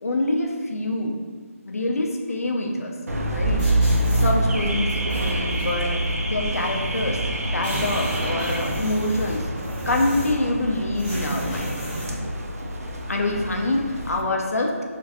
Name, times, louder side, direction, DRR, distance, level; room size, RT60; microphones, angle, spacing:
voice 1, 0.0-1.2 1.6-2.9 3.3-3.7 4.1-9.4 9.9-11.8 13.1-14.8, left 2 dB, 75° left, 1 dB, 0.5 m, -26 dB
Car / Alarm, 3.1-14.2, right 1 dB, 80° right, 0.5 m, -26 dB
sound 1, 3.6-4.3 4.9-5.7 6.6-6.7 7.0-7.1 7.3-10.5 10.9-12.2, equal, 10° right, 1.0 m, -33 dB
2.9 x 2.5 x 2.6 m, 1.5 s
figure-of-eight pair, 170°, 8 cm